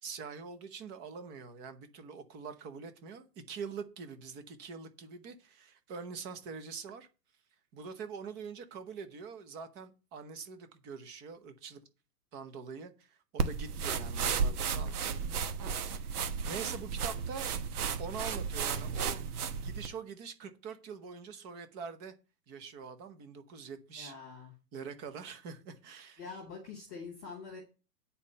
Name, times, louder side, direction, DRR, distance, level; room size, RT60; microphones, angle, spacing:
voice 1, 0.0-7.1 7.7-11.8 12.3-15.1 16.0-17.6 18.0-19.3 19.6-22.1 22.5-24.1 24.7-26.2, right 5 dB, 20° right, 0.9 m, -44 dB
sound 1, 13.4-19.9, right 6 dB, 65° right, 1.3 m, -34 dB
voice 2, 23.9-24.5 26.2-27.6, left 5 dB, 5° left, 0.4 m, -45 dB
9.5 x 4.2 x 6.6 m
hypercardioid pair, 150°, 49 cm